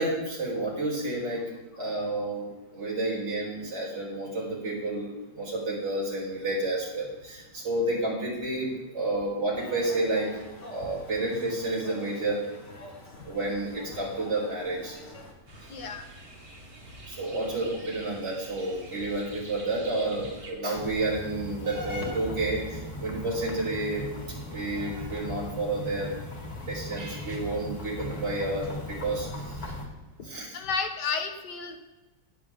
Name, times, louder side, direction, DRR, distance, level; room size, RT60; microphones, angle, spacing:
voice 1, 0.0-1.4 1.8-10.3 10.7-12.4 13.2-15.0 17.1-24.0 24.5-26.1 26.7-29.6 30.2-30.6, right 2 dB, 85° right, -5 dB, 5.1 m, -30 dB
sound 1, 9.5-15.3, left 1 dB, 40° left, 2.4 m, -47 dB
sound 2, 15.5-20.5, right 2 dB, 55° right, 3.2 m, -47 dB
voice 2, 15.7-16.1 30.5-31.8, left 5 dB, 75° left, 6 dB, 1.9 m, -31 dB
sound 3, 20.8-29.9, equal, 20° left, 2.7 m, -38 dB
19.0 x 7.8 x 3.6 m, 1.1 s
omnidirectional pair, 1.8 m